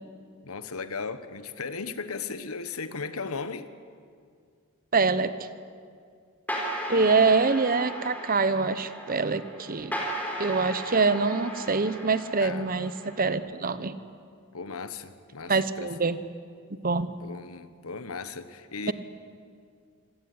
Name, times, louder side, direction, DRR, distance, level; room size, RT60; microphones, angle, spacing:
voice 1, 0.4-3.7 12.4-12.7 14.5-15.9 17.2-18.9, left 4 dB, 85° left, 12 dB, 1.3 m, -36 dB
voice 2, 4.9-5.5 6.9-9.9 10.4-14.0 15.5-16.2 16.8-17.1 18.9-19.0, right 4 dB, 40° right, 14 dB, 1.0 m, -25 dB
sound 1, 6.5-13.3, equal, 10° left, 4.2 m, -36 dB
26.0 x 17.0 x 9.6 m, 2.2 s
head